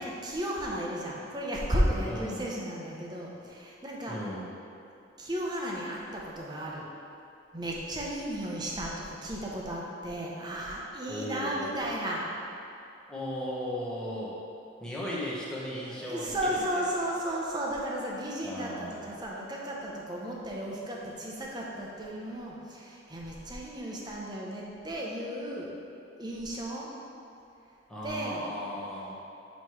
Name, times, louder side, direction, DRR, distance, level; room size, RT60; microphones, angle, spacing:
voice 1, 0.0-4.2 5.2-6.9 7.5-12.2 16.0-25.7 26.2-26.9 28.0-28.5, right 1 dB, 20° right, -3 dB, 0.7 m, -34 dB
voice 2, 2.0-2.4 4.1-4.5 11.1-11.9 13.1-14.4 14.8-17.2 18.4-19.1 27.9-29.1, equal, 5° left, -7 dB, 1.0 m, -37 dB
7.4 x 3.1 x 4.6 m, 2.7 s
head